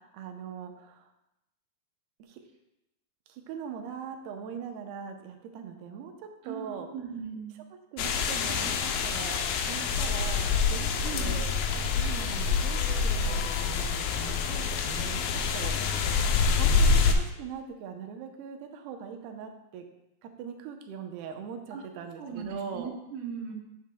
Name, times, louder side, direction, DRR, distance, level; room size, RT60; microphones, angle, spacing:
voice 1, 0.1-1.1 2.2-2.4 3.3-6.9 7.9-11.5 12.0-19.8 20.2-22.9, right 7 dB, 85° right, 4 dB, 2.8 m, -41 dB
voice 2, 6.4-7.5 11.0-11.4 21.7-21.8 22.2-23.5, right 6 dB, 70° right, 1 dB, 2.5 m, -38 dB
sound 1, 8.0-17.1, left 5 dB, 80° left, 2.3 m, -26 dB
9.2 x 8.3 x 2.2 m, 0.89 s
omnidirectional pair, 4.4 m